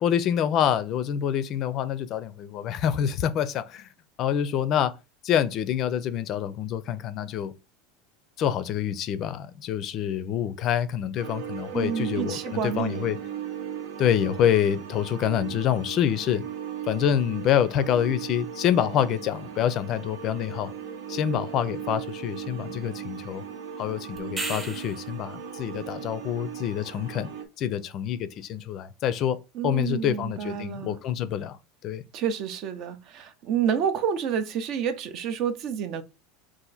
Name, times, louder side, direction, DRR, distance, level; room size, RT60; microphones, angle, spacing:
voice 1, 0.0-3.9 4.2-4.9 5.2-7.5 8.4-13.2 14.0-16.4 16.9-20.7 21.1-23.4 23.8-27.3 27.6-29.4 29.6-31.6 31.8-32.0, left 9 dB, 40° left, 0.4 m, -26 dB
sound 1, 11.2-27.5, right 8 dB, 80° right, 0.9 m, -37 dB
voice 2, 11.7-13.1 29.5-31.0 32.1-36.0, right 8 dB, 45° right, 0.6 m, -29 dB
sound 2, 24.2-25.1 29.8-29.9, right 2 dB, 15° right, 1.0 m, -34 dB
4.2 x 2.5 x 3.9 m
supercardioid pair, 145°, 0 cm